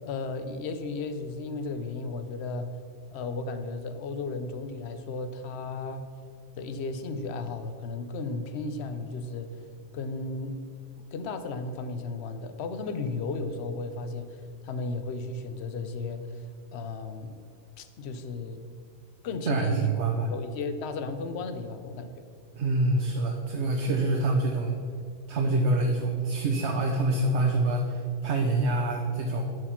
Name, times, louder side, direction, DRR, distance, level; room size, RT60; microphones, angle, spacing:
voice 1, 0.0-2.7 3.1-6.0 6.6-9.5 9.9-10.6 11.1-16.5 16.7-17.3 17.8-18.6 19.2-19.9 20.3-22.1 28.6-28.7, left 3 dB, 70° left, 9 dB, 1.0 m, -34 dB
voice 2, 19.5-20.3 22.6-24.8 25.3-29.5, right 2 dB, 80° right, 1 dB, 1.1 m, -26 dB
11.0 x 4.9 x 5.7 m, 2.4 s
omnidirectional pair, 1.2 m